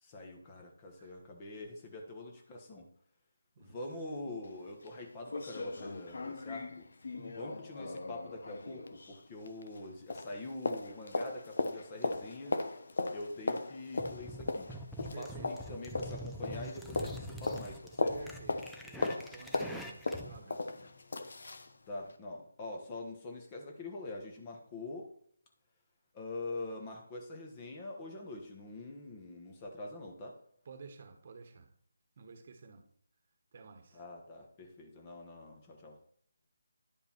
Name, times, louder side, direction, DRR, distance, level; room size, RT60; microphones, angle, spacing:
voice 1, 0.0-2.9 3.6-6.9 7.3-12.6 13.1-14.7 15.2-18.1 21.9-25.1 26.1-30.4 33.9-36.0, left 2 dB, 20° left, 1.4 m, -44 dB
sound 1, 4.4-4.5 4.9-5.0 5.3-9.9 10.1-21.7 22.1-22.2, left 3 dB, 60° left, 1.0 m, -38 dB
voice 2, 7.1-7.4 15.1-15.7 18.1-20.9 30.6-31.7 32.2-32.9 33.5-34.0, right 4 dB, 40° right, 1.3 m, -51 dB
sound 2, 14.0-20.4, equal, ahead, 0.6 m, -45 dB
11.0 x 5.3 x 4.5 m
figure-of-eight pair, 160°, 0 cm